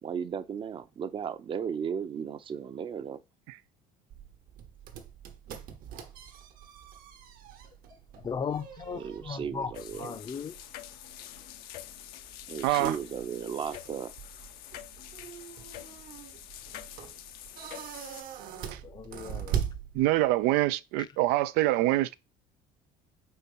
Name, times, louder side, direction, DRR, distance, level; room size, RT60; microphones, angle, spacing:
voice 1, 0.0-3.2 8.9-10.1 12.5-14.1, right 7 dB, 35° right, 0.6 m, -35 dB
sound 1, 4.1-20.5, right 9 dB, 65° right, 1.1 m, -41 dB
voice 2, 7.9-10.5 18.7-19.6, left 6 dB, 30° left, 0.6 m, -37 dB
sound 2, 9.7-18.2, left 12 dB, 75° left, 0.8 m, -46 dB
voice 3, 12.6-13.0 18.7-18.8 19.9-22.1, right 16 dB, 85° right, 0.4 m, -25 dB
4.3 x 4.3 x 5.3 m
cardioid pair, 130°, 16 cm